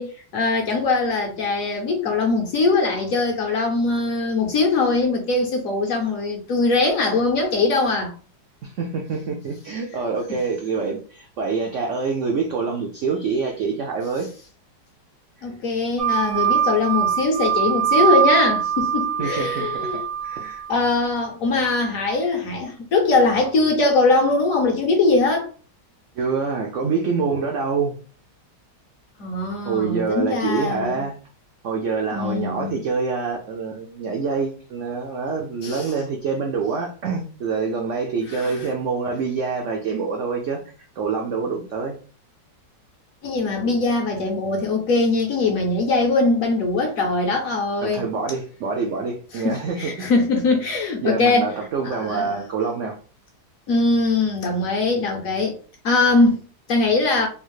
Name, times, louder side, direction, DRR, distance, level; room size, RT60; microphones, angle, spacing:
voice 1, 0.0-8.1 15.4-20.0 20.7-25.5 29.2-31.1 32.1-32.8 35.6-35.9 38.3-38.5 43.2-48.0 49.3-51.5 51.8-52.4 53.7-55.5 55.8-57.3, left 3 dB, 65° left, 0.9 m, -21 dB
voice 2, 8.6-14.3 19.2-20.6 26.1-27.9 29.6-31.1 31.6-40.6 41.0-42.0 47.8-50.1 51.0-53.0, right 5 dB, 85° right, 0.6 m, -26 dB
sound 1, 16.0-20.8, right 9 dB, 20° right, 0.4 m, -22 dB
3.5 x 2.4 x 3.1 m
omnidirectional pair, 1.9 m